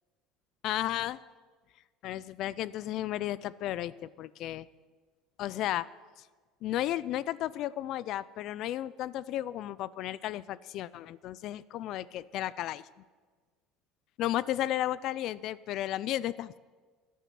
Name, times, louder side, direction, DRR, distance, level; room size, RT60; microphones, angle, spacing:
voice 1, 0.6-1.2 2.0-4.7 5.4-5.9 6.6-12.8 14.2-16.6, left 13 dB, 50° left, 19 dB, 0.4 m, -33 dB
13.5 x 10.5 x 7.6 m, 1.4 s
cardioid pair, 155°, 0 cm